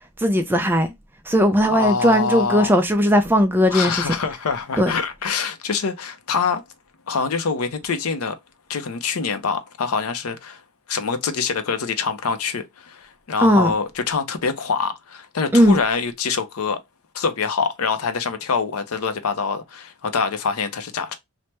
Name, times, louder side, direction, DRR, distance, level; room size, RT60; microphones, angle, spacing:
voice 1, 0.2-0.9 1.3-4.2 4.8-4.9 13.4-13.7 15.5-15.8, equal, 10° right, 0.4 m, -17 dB
voice 2, 1.6-2.7 3.7-6.6 7.1-8.4 8.7-10.6 10.9-16.8 17.1-21.2, left 5 dB, 75° left, 0.5 m, -25 dB
3.3 x 2.1 x 2.8 m
head